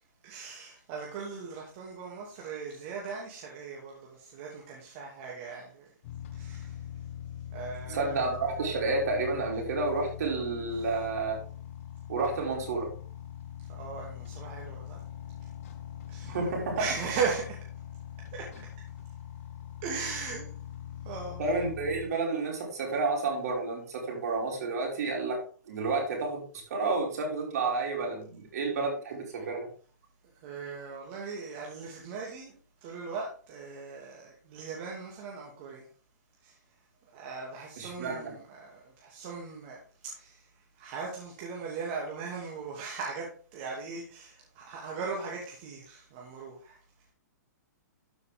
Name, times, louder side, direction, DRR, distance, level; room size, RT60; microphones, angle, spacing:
voice 1, 0.2-5.9 6.3-6.7 7.5-8.3 13.8-15.0 16.1-16.4 16.8-17.6 18.3-18.4 19.8-20.5 21.0-21.4 30.4-32.5 32.8-35.8 36.4-36.5 37.1-39.8 40.0-40.4 40.8-43.3 43.5-46.8, right 5 dB, 40° right, -2 dB, 2.6 m, -38 dB
sound 1, 6.0-22.1, left 10 dB, 50° left, 1.8 m, -42 dB
voice 2, 7.9-11.4 12.1-12.9 16.2-16.8 21.4-25.4 25.7-29.7 37.8-38.3, right 3 dB, 60° right, 0 dB, 5.1 m, -30 dB
13.0 x 6.6 x 3.7 m, 0.41 s
hypercardioid pair, 150°, 10 cm